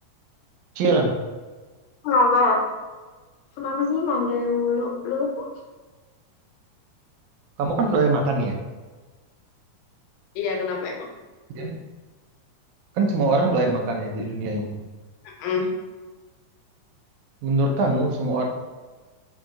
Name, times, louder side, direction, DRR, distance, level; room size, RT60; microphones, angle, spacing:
voice 1, 0.8-1.1 7.6-8.6 11.6-11.8 13.0-14.8 17.4-18.5, right 2 dB, 80° right, 1 dB, 1.9 m, -22 dB
voice 2, 2.0-2.6 3.6-5.5 10.4-11.1 15.4-15.6, left 3 dB, 90° left, 1 dB, 2.3 m, -23 dB
5.2 x 2.8 x 3.6 m, 1.3 s
omnidirectional pair, 3.6 m